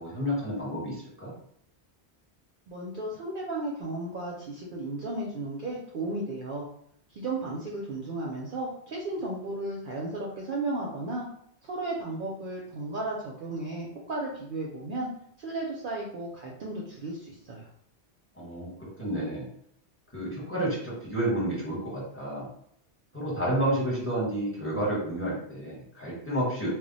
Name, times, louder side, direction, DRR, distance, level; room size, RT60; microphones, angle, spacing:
voice 1, 0.0-1.3 18.4-19.5 20.1-22.4 23.1-26.7, right 1 dB, 15° left, -6 dB, 1.0 m, -30 dB
voice 2, 2.7-6.7 7.1-11.3 11.6-15.1 15.4-17.7, right 2 dB, 60° right, -2 dB, 0.6 m, -34 dB
2.2 x 2.1 x 3.8 m, 0.68 s
omnidirectional pair, 1.1 m